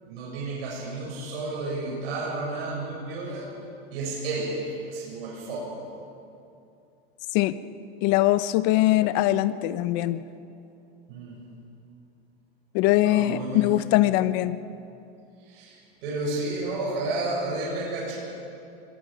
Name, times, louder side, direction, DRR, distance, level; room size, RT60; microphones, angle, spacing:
voice 1, 0.0-3.5 3.9-5.8 11.1-11.3 13.0-13.7 15.4-18.2, right 2 dB, 70° right, -4 dB, 7.7 m, -31 dB
voice 2, 8.0-10.2 12.7-14.6, left 15 dB, 50° left, 13 dB, 0.9 m, -22 dB
26.0 x 22.5 x 5.3 m, 2.7 s
supercardioid pair, 140°, 31 cm